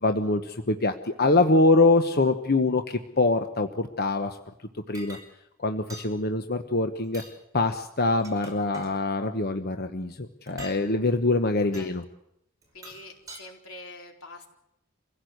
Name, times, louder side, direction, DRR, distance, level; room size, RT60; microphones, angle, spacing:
voice 1, 0.0-4.4 4.9-5.2 5.6-7.2 7.5-12.0, left 2 dB, 50° left, 6 dB, 1.1 m, -24 dB
sound 1, 4.9-5.3 5.9-6.1 7.0-7.3 8.0-8.9 10.5-10.8 11.7-11.9 12.6-13.4, right 1 dB, 15° right, 5.5 m, -45 dB
voice 2, 11.5-12.0 12.7-14.5, left 2 dB, 85° left, 2 dB, 4.1 m, -45 dB
26.0 x 16.5 x 8.0 m, 0.80 s
head